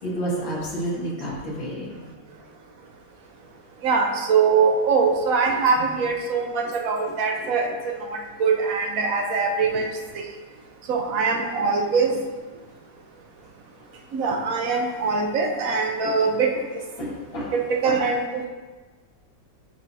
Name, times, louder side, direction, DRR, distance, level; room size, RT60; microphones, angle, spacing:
voice 1, 0.0-2.2 5.8-5.9 11.3-11.7 16.0-16.1 16.5-16.6 17.0-17.5 17.8-18.0, right 1 dB, 65° left, -5 dB, 2.6 m, -31 dB
voice 2, 3.8-7.6 8.4-9.9 10.9-12.1 14.1-16.5 17.8-18.4, right 5 dB, 55° right, 2 dB, 1.0 m, -22 dB
9.3 x 5.9 x 2.7 m, 1.3 s
omnidirectional pair, 2.3 m